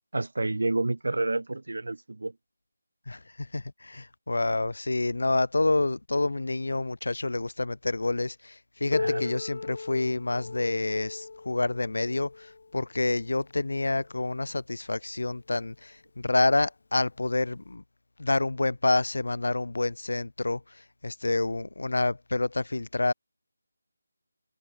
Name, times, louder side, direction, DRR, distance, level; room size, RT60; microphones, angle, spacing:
voice 1, 0.1-2.3 9.0-9.2, right 2 dB, 90° right, 2.9 m, -29 dB
voice 2, 3.1-17.8 18.2-23.1, left 2 dB, 75° left, 2.1 m, -28 dB
Piano, 8.9-14.2 15.1-15.2 15.7-15.8 16.6-16.7 17.7-17.8, left 4 dB, 40° left, 2.4 m, -37 dB
figure-of-eight pair, 180°, 0 cm